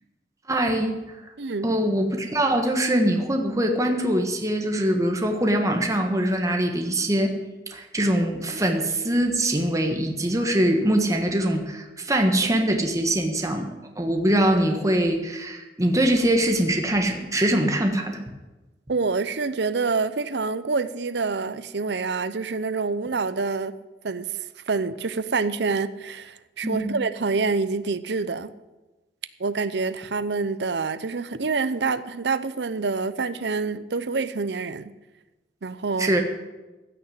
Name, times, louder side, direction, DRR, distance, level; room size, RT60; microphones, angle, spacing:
voice 1, 0.5-0.9 1.6-7.4 7.7-13.7 14.0-18.2 26.6-27.0 36.0-36.2, right 1 dB, 20° right, 1.4 m, -23 dB
voice 2, 1.4-1.7 18.9-23.8 24.0-24.3 24.7-28.5 29.4-34.9 35.6-36.1, right 4 dB, 70° right, 0.7 m, -27 dB
15.5 x 6.6 x 9.2 m
head